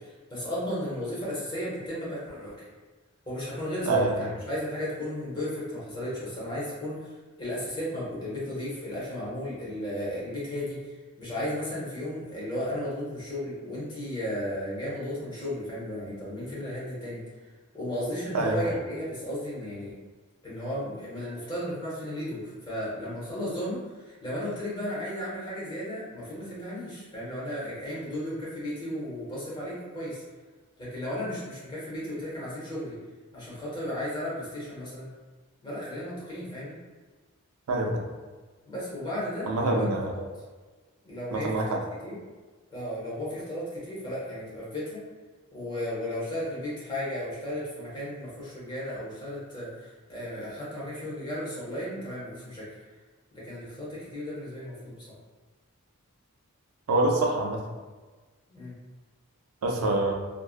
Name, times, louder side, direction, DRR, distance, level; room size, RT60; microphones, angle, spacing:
voice 1, 0.0-2.6 3.3-17.2 17.7-19.9 20.4-30.2 30.8-33.0 33.3-35.1 35.6-36.8 38.7-39.9 40.1-40.2 41.0-42.2 42.7-45.0 45.5-52.6 53.3-55.0 58.5-58.7, equal, 20° left, -9 dB, 0.9 m, -34 dB
voice 2, 37.7-38.0 39.5-40.1 41.3-41.8 56.9-57.6 59.6-60.1, right 2 dB, 80° right, 0 dB, 0.4 m, -25 dB
2.5 x 2.3 x 2.4 m, 1.3 s
head